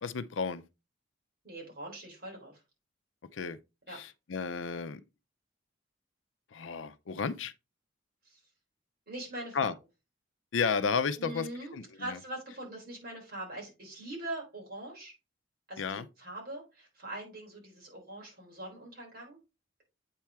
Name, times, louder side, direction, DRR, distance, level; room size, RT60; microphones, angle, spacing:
voice 1, 0.0-0.6 3.3-3.6 3.9-5.0 6.5-7.5 9.5-9.7 10.5-12.2 15.8-16.1, left 5 dB, 80° left, 0.5 m, -33 dB
voice 2, 1.4-2.6 3.9-4.0 8.2-8.4 9.1-9.7 11.1-15.1 15.7-19.4, right 1 dB, 50° right, 3.8 m, -42 dB
8.3 x 4.4 x 3.5 m
head